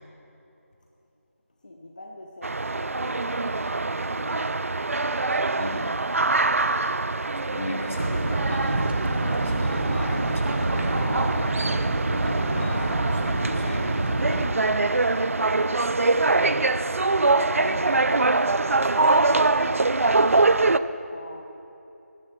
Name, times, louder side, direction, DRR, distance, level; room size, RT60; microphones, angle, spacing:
voice 1, 1.6-4.6 13.5-13.8 14.2-16.6 17.3-21.4, left 1 dB, 30° left, 2 dB, 0.5 m, -42 dB
sound 1, 2.4-20.8, right 3 dB, 60° right, 0.4 m, -24 dB
voice 2, 5.6-6.0 7.5-8.9 9.2-11.6 12.0-13.9 17.6-17.9, equal, 65° left, -2 dB, 3.2 m, -35 dB
sound 2, 8.0-14.5, right 2 dB, 40° right, 0.8 m, -27 dB
18.0 x 9.2 x 4.4 m, 2.9 s
figure-of-eight pair, 170°, 8 cm